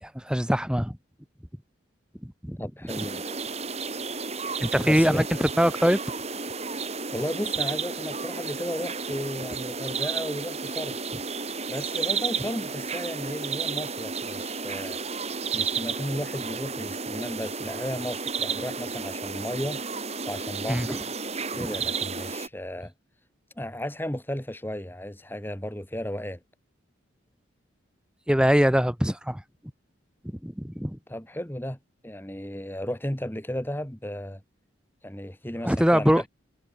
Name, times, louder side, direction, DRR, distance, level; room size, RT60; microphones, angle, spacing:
voice 1, 0.0-1.0 2.2-2.6 4.6-6.0 20.7-21.0 28.3-29.4 30.4-31.0 35.6-36.2, equal, 5° right, 2.0 m, -23 dB
voice 2, 2.6-3.4 4.8-5.3 7.1-11.0 11.7-15.0 15.5-19.8 20.2-20.9 21.5-22.9 23.6-26.4 31.1-31.8 32.0-34.4 35.0-36.3, left 1 dB, 10° left, 1.8 m, -34 dB
sound 1, 2.9-22.5, right 5 dB, 35° right, 4.2 m, -32 dB
head